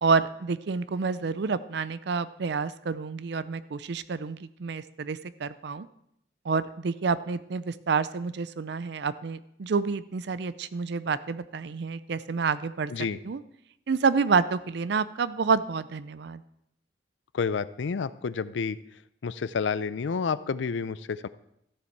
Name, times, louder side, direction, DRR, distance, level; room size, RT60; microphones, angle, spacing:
voice 1, 0.0-5.9 6.5-12.9 13.2-13.4 13.9-16.4, right 5 dB, 65° right, 16 dB, 0.5 m, -28 dB
voice 2, 17.3-18.8 19.2-21.3, left 5 dB, 85° left, 17 dB, 0.4 m, -29 dB
13.5 x 7.1 x 4.6 m, 0.75 s
head